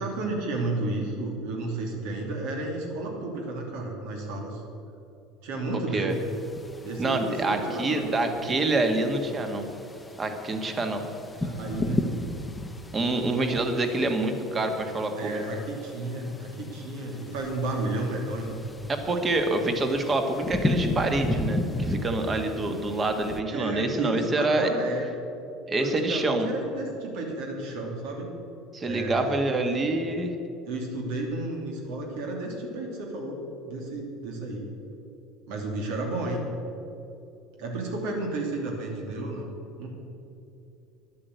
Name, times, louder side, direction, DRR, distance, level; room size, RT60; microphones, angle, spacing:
voice 1, 0.0-4.6 5.4-6.2 6.8-8.1 8.4-8.6 11.4-12.1 15.2-18.6 23.5-25.1 25.8-28.3 28.8-29.8 30.7-33.4 33.7-34.7 35.5-36.4 37.6-39.5 39.8-39.9, right 2 dB, 80° right, 0 dB, 2.6 m, -32 dB
sound 1, 6.1-23.4, left 1 dB, 10° left, 0.8 m, -35 dB
voice 2, 7.0-9.6 10.2-11.0 12.9-15.4 18.9-24.7 25.7-26.5 28.7-30.3, right 2 dB, 20° right, 6 dB, 1.4 m, -26 dB
11.0 x 8.6 x 8.0 m, 2.8 s
cardioid pair, 140°, 0 cm